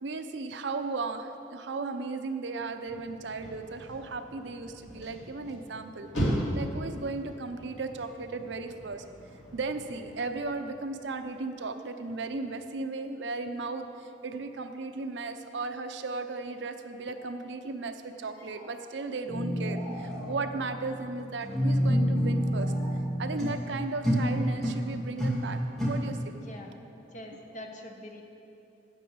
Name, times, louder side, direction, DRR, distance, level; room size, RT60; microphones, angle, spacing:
voice 1, 0.0-9.0 9.5-22.7 23.2-25.6 25.9-26.4, right 3 dB, 65° right, 8 dB, 0.6 m, -36 dB
sound 1, 2.9-11.1, equal, 85° left, 2.7 m, -38 dB
sound 2, 17.0-17.3 18.3-19.2 19.6-20.9 21.6-21.7 22.6-22.9, left 1 dB, 60° left, 2.2 m, -47 dB
sound 3, 19.3-23.6 24.0-24.8 25.2-25.9, equal, 5° left, 2.2 m, -28 dB
voice 2, 27.1-28.2, left 1 dB, 40° left, 2 dB, 1.0 m, -44 dB
9.5 x 8.0 x 6.2 m, 2.8 s
head